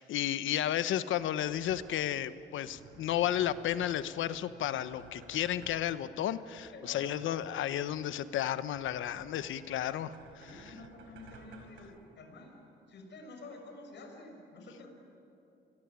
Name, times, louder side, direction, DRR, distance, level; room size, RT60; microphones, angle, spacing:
voice 1, 0.0-10.5, left 11 dB, 80° left, 13 dB, 1.1 m, -33 dB
sound 1, 1.1-11.8, right 4 dB, 85° right, 5.3 m, -55 dB
voice 2, 6.7-7.1 10.4-12.6 12.9-14.9, left 3 dB, 60° left, 3 dB, 6.6 m, -49 dB
28.0 x 22.0 x 9.7 m, 2.9 s
cardioid pair, 90°, 20 cm